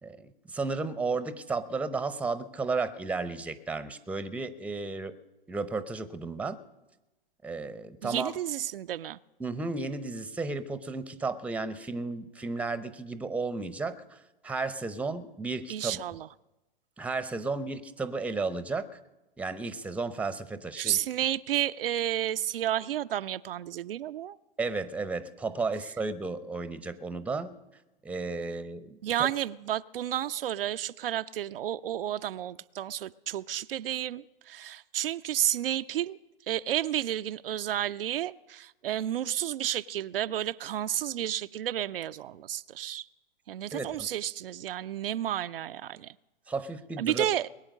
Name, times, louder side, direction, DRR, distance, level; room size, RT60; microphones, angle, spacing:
voice 1, 0.0-5.2 5.5-6.6 7.4-8.3 9.4-16.0 17.0-19.0 19.4-21.0 24.6-27.5 28.0-29.3 43.7-44.1 46.5-47.3, right 3 dB, 5° right, 13 dB, 0.7 m, -33 dB
voice 2, 8.0-9.2 15.7-16.3 20.8-24.4 29.0-36.2 36.5-43.1 43.5-46.1 47.0-47.5, right 11 dB, 75° right, 11 dB, 0.5 m, -31 dB
21.5 x 8.9 x 6.4 m, 1.0 s
hypercardioid pair, 110°, 29 cm